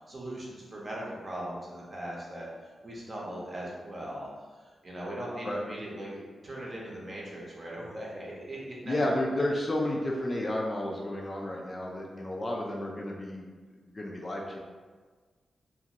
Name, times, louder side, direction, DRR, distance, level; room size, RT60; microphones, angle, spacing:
voice 1, 0.1-4.3 4.8-9.2, right 1 dB, 35° right, -4 dB, 0.7 m, -39 dB
voice 2, 8.8-13.5 13.9-14.6, left 1 dB, 25° left, -1 dB, 0.3 m, -31 dB
2.5 x 2.5 x 2.9 m, 1.5 s
wide cardioid pair, 110°, 0 cm